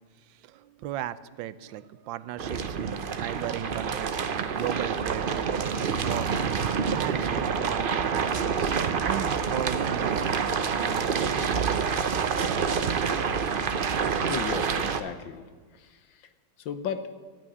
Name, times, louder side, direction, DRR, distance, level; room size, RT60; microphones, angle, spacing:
voice 1, 0.5-2.9 3.2-5.5 6.0-11.1, right 12 dB, 85° right, 16 dB, 1.3 m, -36 dB
sound 1, 2.4-15.0, right 6 dB, 60° right, 0.5 m, -27 dB
voice 2, 14.3-15.5 15.7-16.3 16.6-17.1, left 7 dB, 90° left, 10 dB, 1.7 m, -35 dB
13.5 x 9.2 x 9.8 m, 1.5 s
omnidirectional pair, 2.0 m